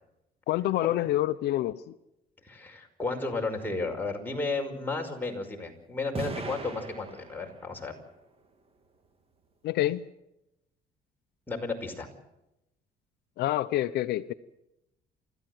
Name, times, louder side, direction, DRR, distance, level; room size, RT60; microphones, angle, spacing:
voice 1, 0.5-2.0 9.6-10.0 13.4-14.3, left 14 dB, 75° left, 11 dB, 0.8 m, -27 dB
voice 2, 2.4-7.9 11.5-12.1, left 3 dB, 10° left, 0 dB, 5.4 m, -33 dB
sound 1, 6.1-7.8, right 4 dB, 35° right, 3.0 m, -38 dB
29.5 x 14.0 x 7.9 m, 0.89 s
cardioid pair, 110°, 17 cm